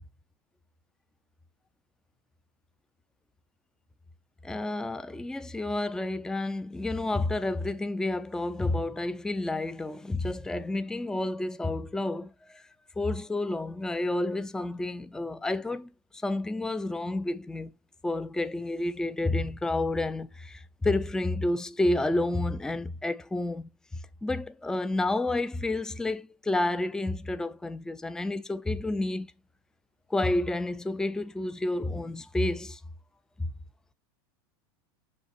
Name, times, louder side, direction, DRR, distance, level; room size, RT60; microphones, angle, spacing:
voice 1, 4.4-12.6 13.0-15.9 16.2-17.7 18.0-23.7 24.2-29.3 30.1-32.8 33.4-33.5, left 2 dB, 5° left, 0.5 m, -30 dB
6.4 x 5.4 x 4.2 m
supercardioid pair, 125°, 12 cm